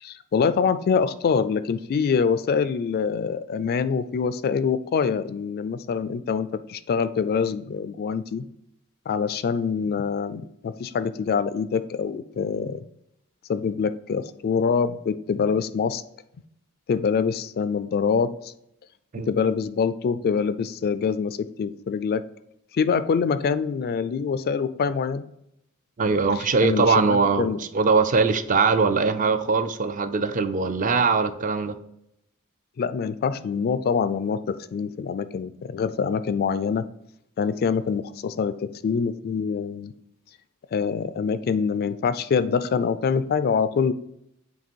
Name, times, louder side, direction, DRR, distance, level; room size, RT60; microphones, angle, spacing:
voice 1, 0.0-8.5 9.1-12.8 13.5-16.0 16.9-18.5 19.3-22.2 22.7-25.2 26.6-27.6 32.8-36.8 37.4-39.9 40.7-43.9, left 6 dB, 45° left, 13 dB, 0.3 m, -25 dB
voice 2, 26.0-31.8, right 4 dB, 35° right, 10 dB, 0.4 m, -21 dB
7.5 x 3.0 x 4.4 m, 0.78 s
head